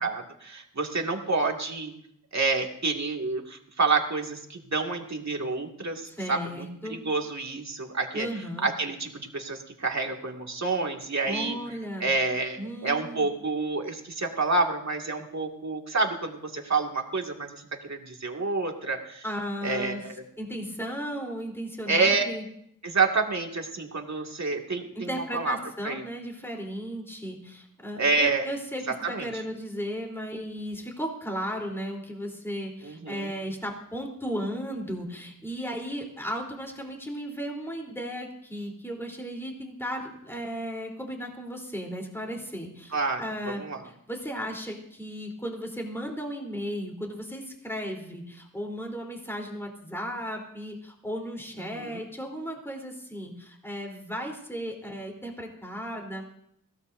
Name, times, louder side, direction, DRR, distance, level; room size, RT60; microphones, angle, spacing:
voice 1, 0.0-1.9 2.3-6.0 6.3-6.6 6.9-8.3 8.6-11.6 12.0-19.2 19.6-20.1 21.9-22.2 22.8-25.6 25.8-26.0 28.0-28.4 29.0-29.3 32.8-33.3 42.9-43.2 43.6-43.8 51.8-52.0, right 3 dB, 55° right, 2 dB, 2.2 m, -28 dB
voice 2, 6.1-7.0 8.1-8.7 11.2-12.1 12.6-13.3 19.2-20.0 20.4-22.4 25.0-56.3, equal, 5° left, 0 dB, 3.6 m, -35 dB
21.5 x 16.5 x 2.7 m, 0.75 s
wide cardioid pair, 65°, 33 cm